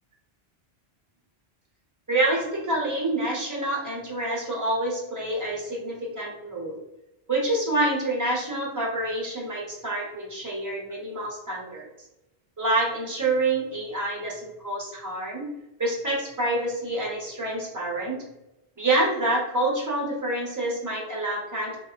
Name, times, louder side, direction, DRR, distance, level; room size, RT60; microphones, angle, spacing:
voice 1, 2.1-6.8 7.3-11.9 12.6-15.5 15.8-18.2 18.8-21.8, right 2 dB, 20° right, -3 dB, 0.8 m, -27 dB
3.3 x 2.2 x 2.4 m, 0.92 s
omnidirectional pair, 1.1 m